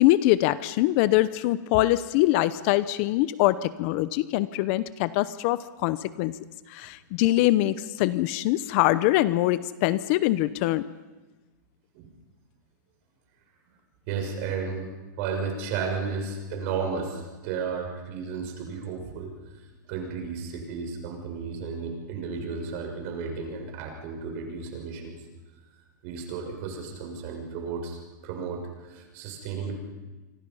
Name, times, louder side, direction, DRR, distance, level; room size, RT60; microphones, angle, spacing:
voice 1, 0.0-6.4 6.7-10.8, left 16 dB, 40° left, 16 dB, 0.8 m, -23 dB
voice 2, 14.1-14.9 15.2-19.3 19.9-25.2 26.0-28.0 28.2-29.7, right 5 dB, 45° right, 2 dB, 6.6 m, -33 dB
26.0 x 25.5 x 5.6 m, 1.2 s
supercardioid pair, 155°, 10 cm